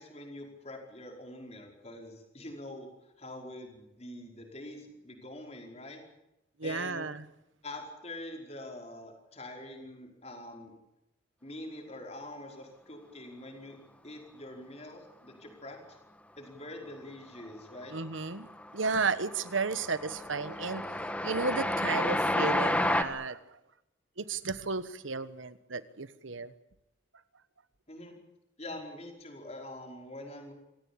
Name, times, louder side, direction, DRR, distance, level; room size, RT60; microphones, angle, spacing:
voice 1, 0.0-6.0 6.6-7.1 7.6-10.7 11.4-13.8 14.0-16.0 16.4-17.9 27.9-28.1 28.6-30.5, left 1 dB, 35° left, 2 dB, 5.0 m, -45 dB
voice 2, 6.6-7.2 17.9-20.9 21.2-23.4 24.2-26.5, right 4 dB, 85° right, 14 dB, 1.3 m, -33 dB
Train, 17.3-17.8 18.1-23.0, left 1 dB, 5° left, 1.4 m, -31 dB
26.5 x 17.0 x 8.7 m, 0.86 s
head